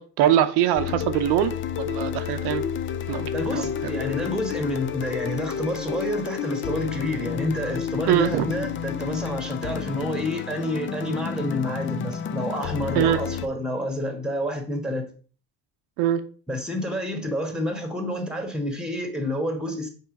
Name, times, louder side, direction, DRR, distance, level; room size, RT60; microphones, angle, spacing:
voice 1, 0.0-2.6 3.1-3.9 8.1-8.5 12.9-13.2 16.0-16.2, right 11 dB, 85° right, 0.8 m, -23 dB
sound 1, 0.8-13.5, left 8 dB, 30° left, 0.4 m, -30 dB
voice 2, 3.3-15.1 16.5-19.9, left 1 dB, ahead, 1.4 m, -29 dB
5.5 x 3.8 x 5.2 m
cardioid pair, 125°, 39 cm